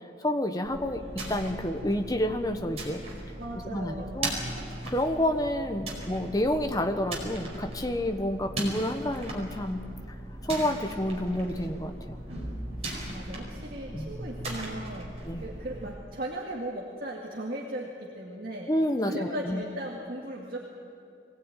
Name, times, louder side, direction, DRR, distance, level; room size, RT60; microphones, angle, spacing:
voice 1, 0.2-1.0 1.3-3.0 3.6-4.3 4.9-9.8 10.4-12.2 13.9-14.1 15.2-15.4 18.7-19.6, left 1 dB, 20° left, 6 dB, 1.2 m, -29 dB
sound 1, 0.6-15.9, right 1 dB, 35° right, 4.9 m, -38 dB
voice 2, 3.4-4.3 12.8-18.7 19.0-20.6, right 1 dB, 50° right, -3 dB, 2.2 m, -37 dB
23.0 x 17.5 x 9.2 m, 2.6 s
head